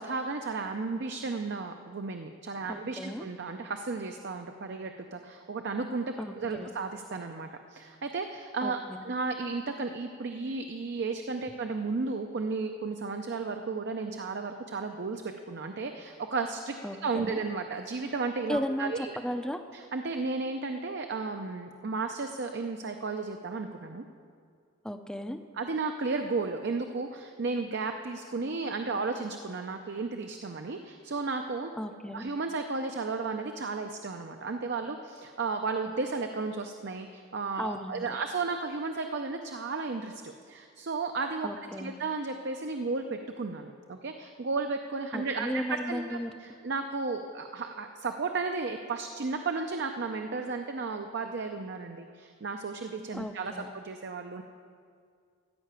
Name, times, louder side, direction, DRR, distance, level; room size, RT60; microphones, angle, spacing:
voice 1, 0.0-6.1 6.4-8.8 9.0-16.8 17.0-19.2 19.7-24.0 25.5-31.7 32.1-41.5 41.8-54.4, right 4 dB, 55° right, 5 dB, 0.5 m, -34 dB
voice 2, 2.7-3.2 6.2-6.7 8.6-9.0 16.8-17.4 18.5-19.6 24.8-25.4 31.8-32.3 37.6-38.0 41.4-41.9 45.1-46.3 53.1-53.7, equal, 5° left, 8 dB, 0.5 m, -35 dB
14.0 x 5.6 x 8.8 m, 2.2 s
head